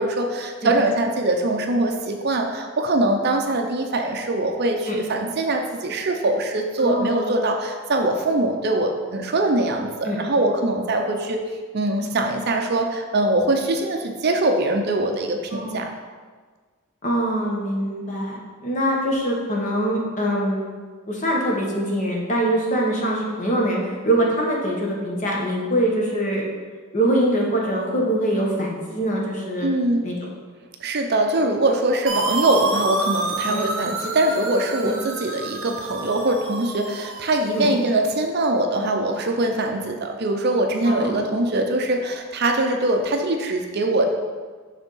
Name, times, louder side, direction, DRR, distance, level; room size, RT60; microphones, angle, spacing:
voice 1, 0.0-11.4 11.7-15.9 29.6-30.1 30.8-44.0, right 2 dB, 50° right, 3 dB, 0.6 m, -22 dB
voice 2, 6.8-7.3 10.0-10.2 15.5-15.8 17.0-20.7 21.1-26.4 26.9-29.7 30.0-30.3 33.5-33.6 37.5-37.7 40.8-41.3, right 1 dB, 35° left, -2 dB, 1.1 m, -23 dB
sound 1, 32.1-37.8, right 2 dB, 65° right, 1.0 m, -28 dB
6.4 x 3.5 x 5.4 m, 1.5 s
head